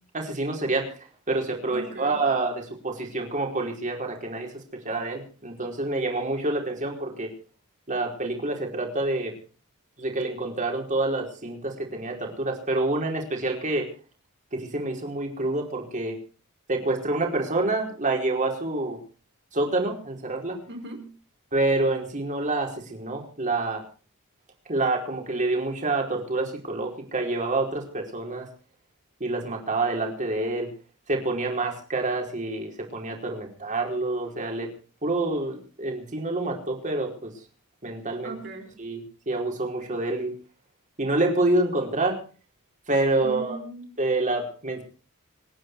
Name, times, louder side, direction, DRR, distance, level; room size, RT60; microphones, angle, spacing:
voice 1, 0.1-0.9 1.3-4.5 4.8-7.3 7.9-9.3 10.0-13.9 14.5-16.2 16.7-19.0 19.5-20.6 21.5-23.8 24.7-28.5 29.2-30.7 31.1-34.7 35.0-37.3 37.8-38.3 38.8-40.3 41.0-42.2 42.9-43.6 44.0-44.8, right 2 dB, 35° right, 1 dB, 4.7 m, -27 dB
voice 2, 1.7-2.2 20.7-21.1 38.2-38.8 43.2-43.9, right 2 dB, 50° right, 3 dB, 5.2 m, -38 dB
27.0 x 10.0 x 4.7 m, 0.39 s
head